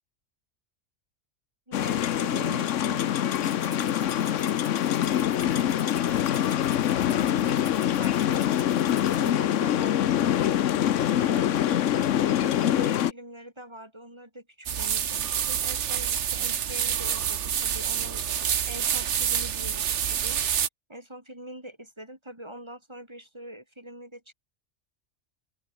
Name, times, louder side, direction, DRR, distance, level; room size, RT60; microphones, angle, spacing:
sound 1, 1.7-13.1, left 11 dB, 85° left, 1.1 m, -24 dB
voice 1, 1.7-4.5 5.0-7.7 8.0-10.4 11.2-18.2 18.6-20.4 20.9-24.3, right 1 dB, 20° right, 6.2 m, -43 dB
Rattle (instrument), 3.3-9.3, left 1 dB, 20° left, 3.7 m, -48 dB
sound 2, 14.7-20.7, right 9 dB, 70° right, 1.2 m, -27 dB
open air
omnidirectional pair, 1.2 m